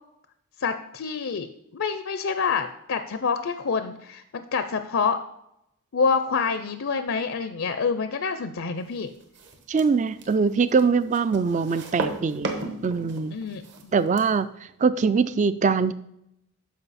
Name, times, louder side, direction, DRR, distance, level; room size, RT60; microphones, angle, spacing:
voice 1, 0.6-5.2 5.9-9.1 13.3-13.9, left 5 dB, 60° left, 9 dB, 0.5 m, -27 dB
sound 1, 9.1-14.4, right 2 dB, 50° right, 1.2 m, -35 dB
voice 2, 9.7-12.5 12.8-13.4 13.9-14.5 14.8-15.9, right 5 dB, 35° right, 14 dB, 0.3 m, -22 dB
12.5 x 5.2 x 4.1 m, 0.78 s
head